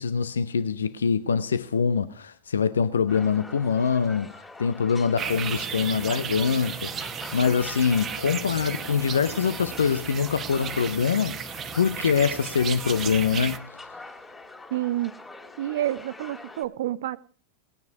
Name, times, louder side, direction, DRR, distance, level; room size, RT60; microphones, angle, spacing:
voice 1, 0.0-6.9 7.3-13.7, left 6 dB, 70° left, 0.7 m, -24 dB
sound 1, 3.1-16.7, left 2 dB, 15° left, 2.9 m, -43 dB
sound 2, 5.2-13.6, right 7 dB, 25° right, 1.1 m, -34 dB
voice 2, 14.7-15.1 15.6-17.2, right 13 dB, 55° right, 0.5 m, -28 dB
19.5 x 9.4 x 4.7 m
figure-of-eight pair, 90°, 0 cm